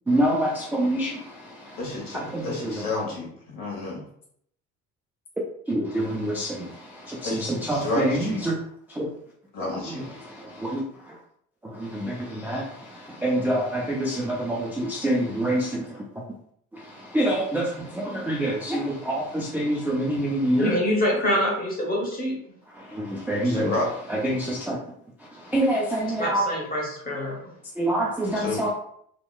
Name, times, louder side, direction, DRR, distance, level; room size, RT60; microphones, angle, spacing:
voice 1, 0.1-1.8 2.1-3.0 5.7-8.6 8.9-9.1 9.9-11.2 11.6-16.0 16.7-20.8 22.7-23.7 24.1-24.8 25.4-26.4 27.8-28.7, right 1 dB, 5° right, -4 dB, 0.3 m, -27 dB
voice 2, 1.8-4.0 7.2-8.4 9.5-10.1 23.4-23.9 28.3-28.7, left 2 dB, 55° left, -4 dB, 1.3 m, -30 dB
voice 3, 20.6-22.4 26.2-27.4, left 1 dB, 20° left, -1 dB, 1.0 m, -25 dB
2.8 x 2.1 x 2.4 m, 0.68 s
figure-of-eight pair, 50°, 41 cm